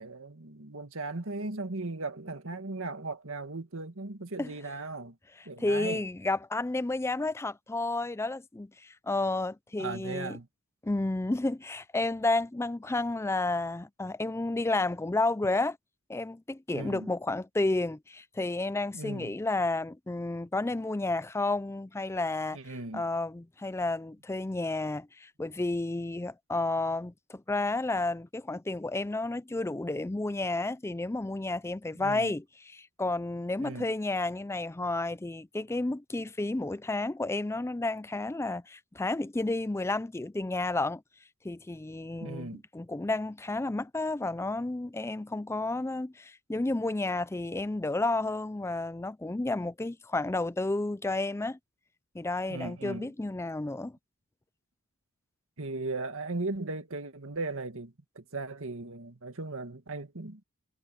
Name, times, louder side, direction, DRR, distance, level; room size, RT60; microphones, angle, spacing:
voice 1, 0.0-5.2 5.5-6.0 9.8-10.5 16.7-17.1 18.9-19.3 22.5-23.0 32.0-32.3 33.6-33.9 42.2-42.6 52.5-53.1 55.6-60.4, right 3 dB, 65° right, 1.9 m, -37 dB
voice 2, 5.4-10.4 10.8-15.8 16.1-41.0 41.4-51.6 52.1-54.0, left 2 dB, 10° left, 0.4 m, -31 dB
head